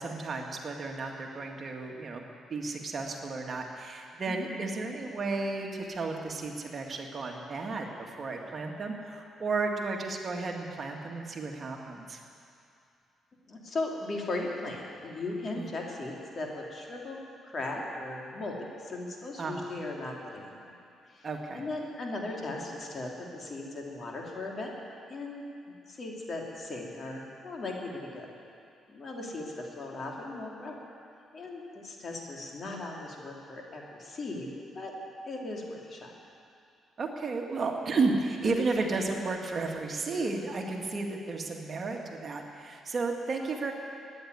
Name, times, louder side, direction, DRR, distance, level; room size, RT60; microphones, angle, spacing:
voice 1, 0.0-2.2 2.5-12.2 15.6-15.7 19.4-19.6 21.2-21.6 37.0-43.7, right 3 dB, 40° right, 1 dB, 1.9 m, -33 dB
voice 2, 13.5-17.2 17.4-20.7 21.1-21.3 21.5-24.7 25.1-25.4 25.9-28.3 28.9-30.8 31.3-34.9 35.2-36.1, left 2 dB, 45° left, -1 dB, 2.9 m, -37 dB
14.5 x 9.7 x 9.6 m, 2.5 s
cardioid pair, 90°, 0 cm